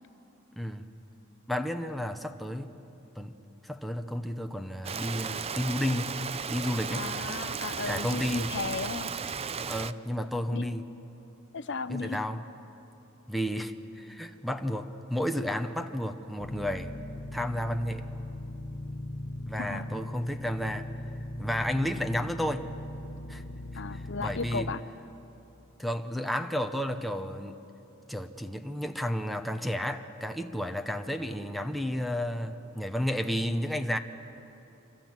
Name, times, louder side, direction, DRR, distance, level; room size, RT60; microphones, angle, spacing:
voice 1, 0.6-0.9 1.5-2.7 3.2-3.3 3.6-6.2 6.5-7.1 7.9-8.5 9.7-10.8 11.9-12.4 13.3-16.9 17.3-18.0 19.5-20.9 21.4-22.7 23.3-23.4 24.2-24.7 25.8-27.6 28.1-34.0, equal, ahead, 5 dB, 0.9 m, -32 dB
Rain, 4.8-9.9, right 6 dB, 30° right, 0.5 m, -35 dB
voice 2, 6.9-9.1 10.5-10.7 11.5-12.2 19.6-19.9 23.7-24.8, left 4 dB, 60° left, 12 dB, 0.7 m, -35 dB
sound 1, 16.4-24.8, left 1 dB, 40° left, 1.3 m, -39 dB
27.0 x 25.0 x 7.5 m, 3.0 s
head